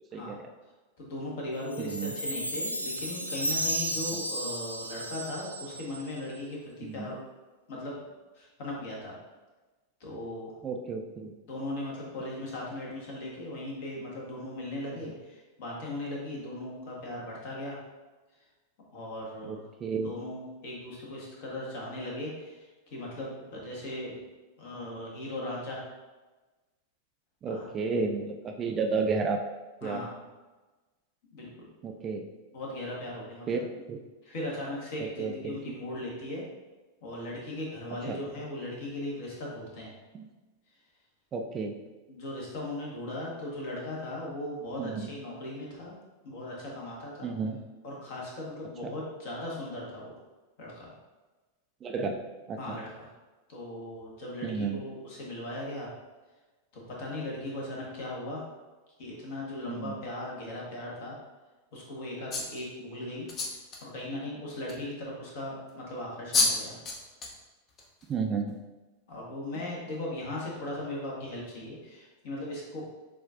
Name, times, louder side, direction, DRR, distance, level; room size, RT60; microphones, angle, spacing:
voice 1, 0.1-0.5 1.8-2.2 4.1-4.2 6.8-7.1 10.6-11.3 19.5-20.1 27.4-29.4 29.8-30.1 31.8-32.3 33.5-34.0 35.0-35.6 38.1-38.2 40.1-40.3 41.3-41.7 44.8-45.1 47.2-47.6 48.8-48.9 51.8-52.2 52.5-52.8 54.4-54.8 59.7-60.0 68.1-68.6, right 4 dB, 25° right, 3 dB, 0.4 m, -32 dB
voice 2, 1.0-7.3 7.7-8.0 8.3-9.1 10.0-10.6 11.5-17.8 18.9-19.7 20.0-24.2 24.6-25.8 27.5-27.7 29.8-30.2 31.3-31.5 32.5-33.6 34.2-36.4 37.0-39.9 42.1-45.9 46.2-47.3 47.8-50.1 50.6-50.9 52.6-53.1 53.5-55.9 56.7-58.4 59.0-61.2 61.7-63.3 63.8-66.8 69.1-72.8, left 1 dB, 50° left, -3 dB, 1.3 m, -38 dB
Chime, 1.7-6.2, equal, 85° left, 0.4 m, -33 dB
sound 1, 62.3-62.6 63.3-63.8 64.7-64.8 66.0-66.1 66.3-66.6 66.9-67.3 67.8-68.0, left 3 dB, 30° left, 0.7 m, -28 dB
7.0 x 2.5 x 2.5 m, 1.2 s
figure-of-eight pair, 90°, 0 cm